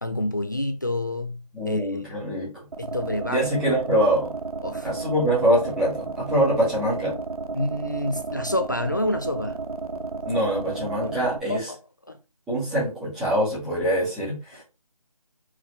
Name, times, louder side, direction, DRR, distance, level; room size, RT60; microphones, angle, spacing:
voice 1, 0.0-1.9 2.8-3.5 4.6-4.9 7.5-9.6 11.5-11.8 12.1-12.2, left 1 dB, 30° left, 0.4 m, -28 dB
voice 2, 1.5-2.5 3.3-4.3 4.8-7.2 10.2-11.7 12.5-14.6, equal, 5° right, 1.3 m, -24 dB
sound 1, 2.7-11.4, right 4 dB, 65° right, 0.7 m, -33 dB
4.5 x 3.6 x 3.1 m
figure-of-eight pair, 165°, 20 cm